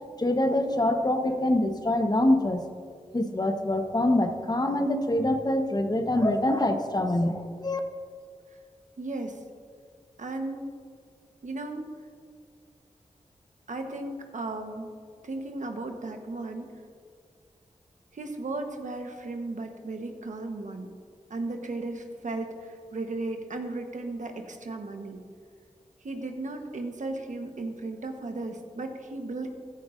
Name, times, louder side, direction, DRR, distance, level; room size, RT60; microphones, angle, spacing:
voice 1, 0.2-2.6 3.1-7.8, left 1 dB, 30° left, 6 dB, 1.1 m, -25 dB
voice 2, 9.0-9.4 10.2-10.7 11.4-11.9 13.7-14.9 15.2-16.7 18.1-20.9 21.3-25.2 26.0-29.5, right 2 dB, 70° right, 4 dB, 1.2 m, -35 dB
14.5 x 11.0 x 2.6 m, 2.1 s
cardioid pair, 50°, 13 cm